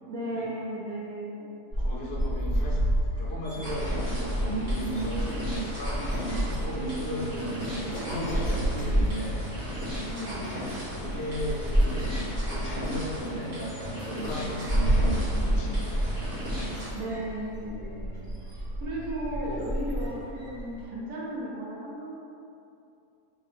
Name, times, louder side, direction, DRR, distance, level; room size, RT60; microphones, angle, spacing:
voice 1, 0.0-1.5 6.7-7.4 10.1-10.5 16.9-18.5 18.8-22.1, right 1 dB, 75° right, -5 dB, 1.1 m, -35 dB
sound 1, 1.7-20.8, equal, 30° right, 1.2 m, -30 dB
voice 2, 1.8-2.9 3.2-9.4 10.4-10.6 10.9-16.3 17.0-17.2, right 1 dB, 50° left, -4 dB, 0.8 m, -36 dB
sound 2, 3.6-16.9, equal, 50° right, 1.8 m, -36 dB
sound 3, 4.6-4.7 4.9-5.6 7.9-8.8, equal, 80° left, 1.1 m, -41 dB
4.3 x 2.7 x 3.5 m, 2.6 s
omnidirectional pair, 1.5 m